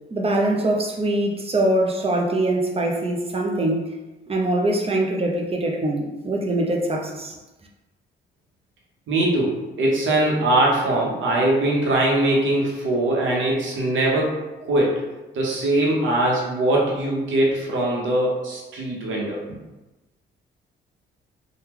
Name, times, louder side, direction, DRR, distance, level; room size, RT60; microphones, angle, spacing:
voice 1, 0.1-3.8 4.3-7.4, right 1 dB, 30° right, 0 dB, 0.5 m, -23 dB
voice 2, 9.1-14.4 14.7-15.0 15.3-19.4, right 1 dB, 70° right, -2 dB, 0.9 m, -21 dB
3.0 x 2.3 x 3.6 m, 1.1 s
cardioid pair, 95°, 20 cm